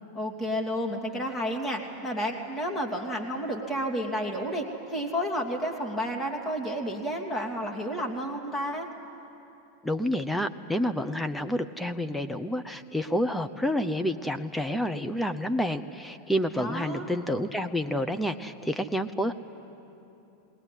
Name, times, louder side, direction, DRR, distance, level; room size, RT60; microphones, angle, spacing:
voice 1, 0.1-8.9 16.6-17.1, equal, 25° left, 1 dB, 2.6 m, -31 dB
voice 2, 9.8-19.3, equal, 5° left, 8 dB, 0.8 m, -29 dB
19.5 x 19.5 x 10.0 m, 2.9 s
hypercardioid pair, 95°, 0 cm